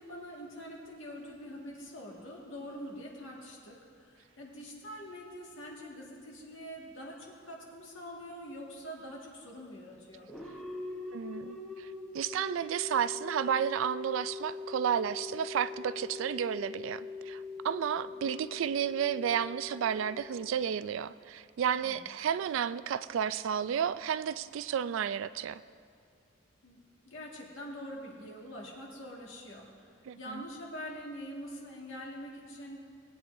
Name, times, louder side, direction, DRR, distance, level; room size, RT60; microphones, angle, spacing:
voice 1, 0.0-10.3 18.0-18.3 21.8-22.1 26.6-26.8 27.1-32.8, equal, 75° left, -2 dB, 1.9 m, -45 dB
sound 1, 10.3-21.0, left 4 dB, ahead, 1.1 m, -43 dB
voice 2, 11.1-11.9 12.1-25.6 30.1-30.4, right 8 dB, 75° right, 15 dB, 0.3 m, -32 dB
19.0 x 8.8 x 2.7 m, 2.3 s
head